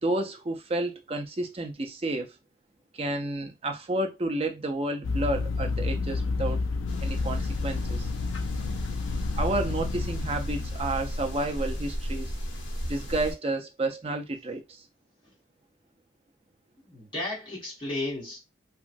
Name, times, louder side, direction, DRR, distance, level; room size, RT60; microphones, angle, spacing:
voice 1, 0.0-2.4 2.9-6.6 7.0-8.1 9.3-12.3 12.9-14.8, right 2 dB, 30° right, 0.4 m, -31 dB
sound 1, 5.0-11.7, left 3 dB, 85° left, 0.4 m, -30 dB
sound 2, 6.9-13.3, equal, 70° left, 0.8 m, -35 dB
voice 2, 16.9-18.4, left 2 dB, 25° left, 1.4 m, -33 dB
3.0 x 2.4 x 2.5 m
head